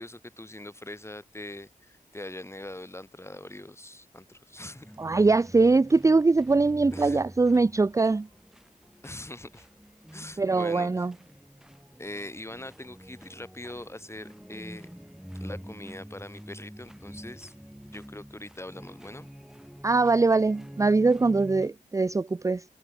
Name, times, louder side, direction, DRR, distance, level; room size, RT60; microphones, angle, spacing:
voice 1, 0.0-4.9 6.9-7.2 9.0-9.7 10.1-11.1 12.0-14.9 15.4-17.5 17.8-19.3, left 1 dB, 20° left, 3.9 m, -42 dB
sound 1, 4.5-21.7, equal, 5° right, 3.4 m, -47 dB
voice 2, 5.0-8.3 10.4-11.1 19.8-22.6, right 3 dB, 20° right, 0.4 m, -22 dB
cardioid pair, 55°, 15 cm